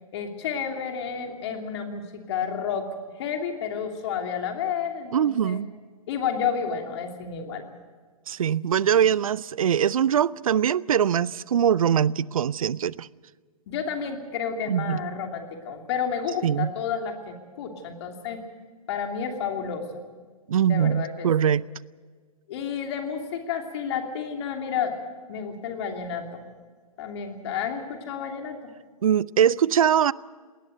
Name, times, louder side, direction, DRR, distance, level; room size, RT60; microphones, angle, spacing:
voice 1, 0.1-5.6 6.1-7.6 13.7-18.4 18.9-20.0 20.6-21.3 22.5-25.0 25.3-26.4 27.0-28.6, left 7 dB, 45° left, 2.9 m, -31 dB
voice 2, 5.1-5.7 8.3-13.1 14.7-15.0 16.4-16.7 20.5-21.6 29.0-30.1, right 9 dB, 65° right, 0.6 m, -22 dB
20.0 x 19.0 x 7.9 m
figure-of-eight pair, 120°, 19 cm